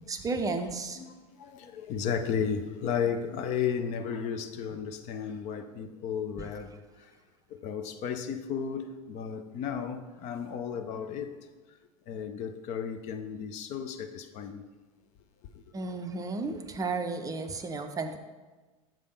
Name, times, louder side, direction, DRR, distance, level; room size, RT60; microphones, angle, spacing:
voice 1, 0.1-1.0 15.7-18.2, right 3 dB, 20° right, 0.5 m, -33 dB
voice 2, 1.0-7.1 7.5-11.4 12.1-14.6 15.5-15.6, left 7 dB, 40° left, 0.5 m, -34 dB
7.5 x 3.4 x 5.4 m
figure-of-eight pair, 85°, 18 cm